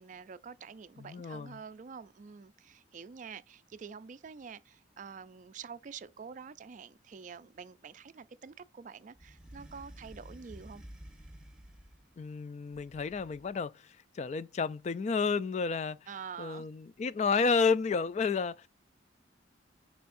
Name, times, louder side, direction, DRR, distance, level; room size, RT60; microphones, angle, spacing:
voice 1, 0.0-10.8 16.1-16.7, right 6 dB, 40° right, 0.4 m, -47 dB
voice 2, 1.0-1.6 12.2-16.0 16.4-18.7, left 5 dB, 35° left, 0.3 m, -31 dB
sound 1, 9.1-12.2 12.7-13.6, right 1 dB, 5° right, 1.3 m, -51 dB
6.8 x 5.5 x 2.5 m
head